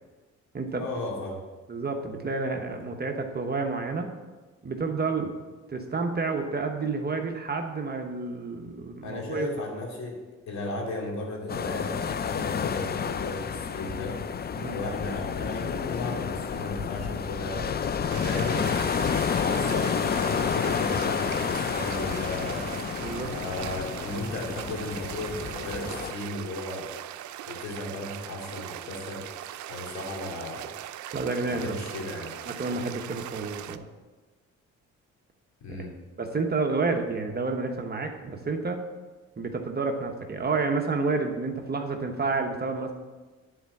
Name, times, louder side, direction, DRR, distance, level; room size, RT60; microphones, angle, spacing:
voice 1, 0.7-1.4 9.0-10.2 10.5-14.2 14.6-18.8 19.4-22.7 23.3-26.9 27.4-29.3 29.7-30.7 31.4-32.3 35.6-35.9, left 2 dB, 65° left, 0 dB, 2.6 m, -35 dB
voice 2, 1.7-4.1 4.6-5.3 5.7-9.5 14.5-14.8 19.6-19.7 23.0-23.3 31.1-31.7 32.5-33.9 35.8-35.9 36.2-38.8 39.4-42.9, right 3 dB, 30° right, 4 dB, 1.1 m, -30 dB
sound 1, 11.5-26.1, left 7 dB, 35° left, 0.5 m, -30 dB
sound 2, 18.1-33.8, right 12 dB, 70° right, 0.5 m, -40 dB
10.5 x 4.5 x 7.1 m, 1.3 s
cardioid pair, 90°, 30 cm